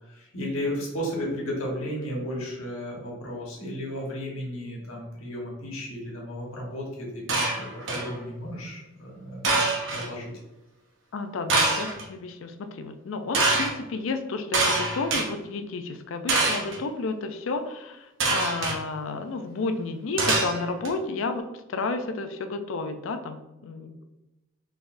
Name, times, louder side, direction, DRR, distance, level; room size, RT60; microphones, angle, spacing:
voice 1, 0.1-10.3, equal, 90° left, -2 dB, 1.3 m, -34 dB
sound 1, 7.3-8.1 9.4-10.1 11.5-12.0 13.3-13.7 14.5-15.3 16.3-16.8 18.2-18.8 20.2-20.9, right 3 dB, 60° right, 0.8 m, -24 dB
voice 2, 11.1-24.1, left 3 dB, 70° left, 8 dB, 0.4 m, -32 dB
4.0 x 3.4 x 2.5 m, 0.99 s
head